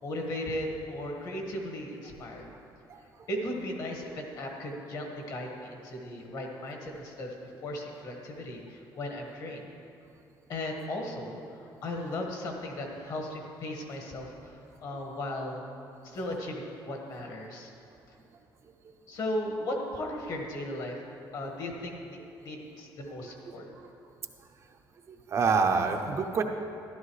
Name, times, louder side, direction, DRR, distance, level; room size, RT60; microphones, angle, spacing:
voice 1, 0.0-2.5 3.3-9.7 10.5-15.6 16.0-17.7 19.1-21.0 21.3-23.7, left 1 dB, 50° left, 1 dB, 1.6 m, -36 dB
voice 2, 25.1-26.4, right 5 dB, 35° right, 4 dB, 0.6 m, -27 dB
13.5 x 11.5 x 3.2 m, 2.6 s
cardioid pair, 170°, 8 cm